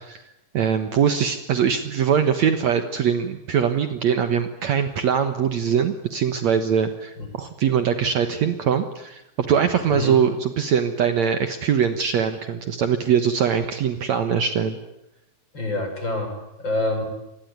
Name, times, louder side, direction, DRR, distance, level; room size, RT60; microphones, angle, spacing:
voice 1, 0.5-14.8, right 7 dB, 60° right, 9 dB, 2.3 m, -22 dB
voice 2, 15.5-17.0, left 2 dB, 30° left, 5 dB, 6.1 m, -26 dB
27.0 x 21.0 x 9.5 m, 0.88 s
omnidirectional pair, 4.0 m